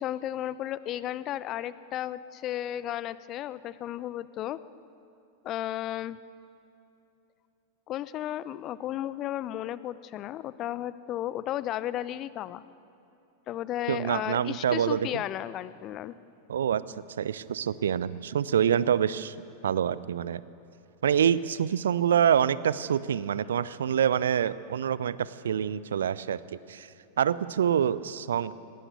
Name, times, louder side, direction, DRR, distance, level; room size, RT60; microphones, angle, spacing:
voice 1, 0.0-4.6 5.4-6.2 7.9-12.6 13.5-16.1, left 12 dB, 35° left, 17 dB, 0.6 m, -34 dB
voice 2, 13.9-15.2 16.5-16.8 17.2-19.4 19.6-20.4 21.0-26.9 27.2-28.5, right 9 dB, 65° right, 18 dB, 0.5 m, -26 dB
18.5 x 18.0 x 8.2 m, 2.8 s
figure-of-eight pair, 90°, 0 cm